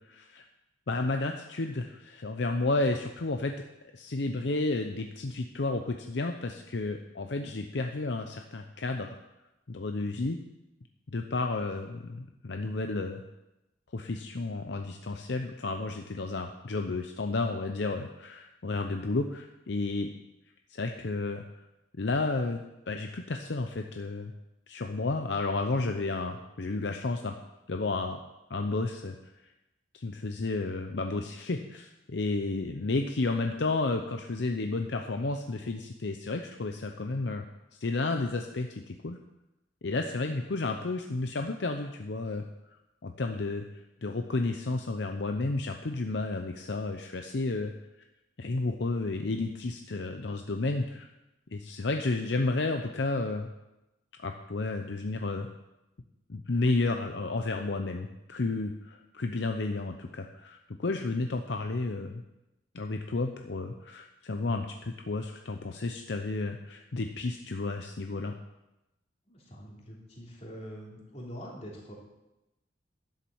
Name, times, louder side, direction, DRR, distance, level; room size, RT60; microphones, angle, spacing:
voice 1, 0.1-0.5 0.9-3.7 3.9-9.2 9.7-10.4 11.1-13.2 13.9-20.1 20.7-21.6 22.0-24.3 24.7-27.3 27.7-28.2 28.5-29.1 29.9-37.5 37.8-39.2 39.8-42.4 43.0-43.6 44.0-47.7 48.4-51.1 51.5-53.5 54.2-55.5 56.3-62.2 62.7-68.4, left 3 dB, 65° left, 5 dB, 0.7 m, -32 dB
voice 2, 69.3-71.9, equal, 35° left, -3 dB, 3.2 m, -44 dB
11.5 x 7.5 x 7.1 m, 0.96 s
head